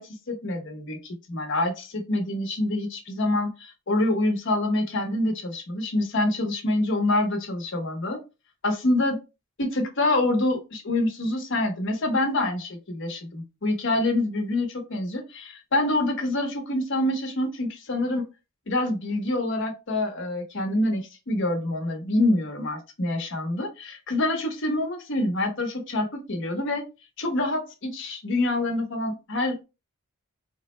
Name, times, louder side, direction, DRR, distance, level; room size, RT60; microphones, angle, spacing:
voice 1, 0.3-8.2 8.6-9.2 9.6-18.2 18.7-26.8 27.2-29.6, left 2 dB, 60° left, 2 dB, 0.9 m, -26 dB
3.7 x 2.1 x 3.0 m, 0.27 s
head